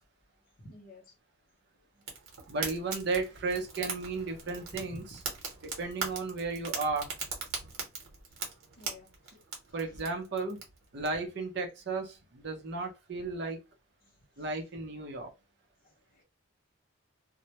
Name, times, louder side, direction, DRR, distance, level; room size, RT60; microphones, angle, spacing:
voice 1, 0.6-1.0 4.7-5.1 8.8-9.1 16.2-16.3, equal, 40° left, 0.7 m, -49 dB
Fire, 2.0-11.1, right 5 dB, 85° right, 0.9 m, -40 dB
voice 2, 2.5-5.2 5.6-7.1 9.7-10.6 10.9-13.6 14.4-15.3, right 3 dB, 55° right, 0.6 m, -34 dB
2.1 x 2.1 x 2.8 m
head